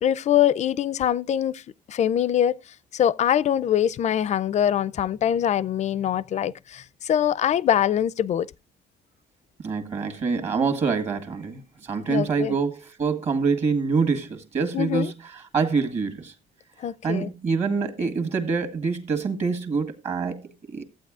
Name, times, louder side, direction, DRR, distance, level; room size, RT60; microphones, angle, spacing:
voice 1, 0.0-1.6 1.9-2.6 2.9-8.5 12.1-12.5 14.7-15.1 16.8-17.3, left 10 dB, 45° left, 0.4 m, -23 dB
voice 2, 9.6-16.3 17.0-20.9, right 5 dB, 40° right, 1.8 m, -26 dB
14.5 x 8.6 x 2.4 m
cardioid pair, 110°, 17 cm